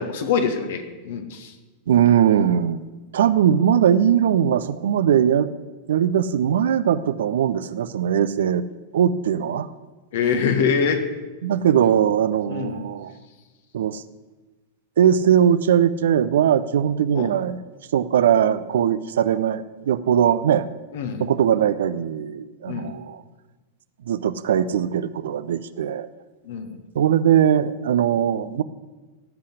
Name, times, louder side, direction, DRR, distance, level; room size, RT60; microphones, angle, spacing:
voice 1, 0.0-1.5 10.1-11.0 12.5-12.8 17.1-17.3 20.9-21.3 22.7-22.9 26.5-26.8, left 6 dB, 55° left, 7 dB, 1.7 m, -24 dB
voice 2, 1.9-2.8 3.1-5.5 5.9-8.6 8.9-9.7 11.4-13.1 13.7-14.0 15.0-17.6 17.9-20.7 21.2-23.2 24.1-26.1 26.9-28.6, right 9 dB, 60° right, 14 dB, 0.6 m, -20 dB
16.5 x 5.7 x 9.8 m, 1.3 s
figure-of-eight pair, 90°, 0 cm